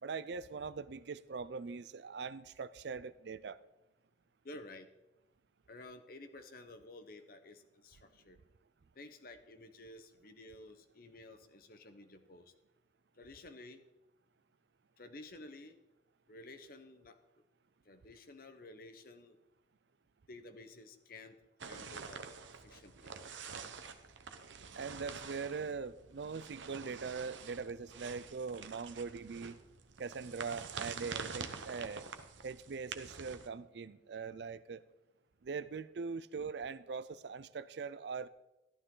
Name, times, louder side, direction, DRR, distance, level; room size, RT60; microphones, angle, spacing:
voice 1, 0.0-3.6 24.7-29.6 30.0-32.1 32.4-34.8 35.4-38.3, right 5 dB, 65° right, 16 dB, 0.4 m, -42 dB
voice 2, 4.4-4.9 5.7-8.4 9.0-12.5 13.2-13.8 15.0-15.8 16.3-17.2 17.8-19.4 20.3-21.4 21.7-22.2 22.6-23.1, left 2 dB, 50° left, 8 dB, 1.0 m, -52 dB
sound 1, 21.6-33.5, right 5 dB, 80° right, 0.9 m, -47 dB
13.5 x 12.0 x 3.8 m, 0.97 s
head